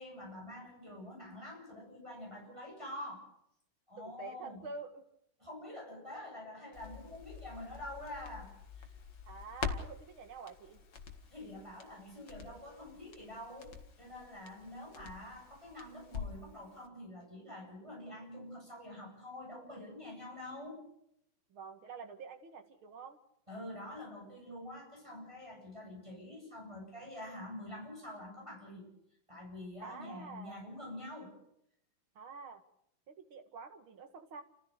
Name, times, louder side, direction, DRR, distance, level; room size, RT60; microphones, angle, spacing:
voice 1, 0.0-3.2 3.9-4.6 5.4-8.5 8.8-9.0 11.3-20.8 23.5-28.9 29.3-31.4, left 1 dB, 15° right, -2 dB, 8.2 m, -47 dB
voice 2, 4.0-5.0 9.3-10.8 14.6-15.3 21.5-23.2 29.8-30.6 32.2-32.6 33.1-34.4, right 4 dB, 75° right, 7 dB, 2.8 m, -48 dB
Crackle, 6.7-16.5 16.8-16.9, left 6 dB, 55° left, 2.4 m, -46 dB
30.0 x 15.5 x 6.7 m, 0.76 s
omnidirectional pair, 2.3 m